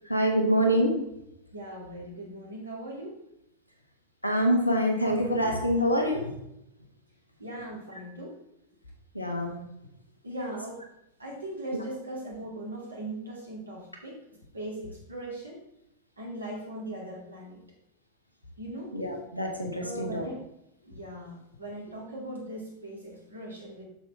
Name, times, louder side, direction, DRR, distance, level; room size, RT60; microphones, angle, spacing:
voice 1, 0.1-0.9 4.2-6.3 9.1-9.5 11.7-11.8 18.9-20.3, equal, 85° left, 2 dB, 1.4 m, -25 dB
voice 2, 1.5-3.2 7.4-8.4 10.2-10.8 11.2-14.2 14.5-15.6 16.2-17.6 18.6-18.9 19.8-20.4 20.9-23.9, right 1 dB, 75° right, -2 dB, 2.6 m, -39 dB
7.8 x 6.7 x 3.4 m, 0.82 s
figure-of-eight pair, 90°, 0 cm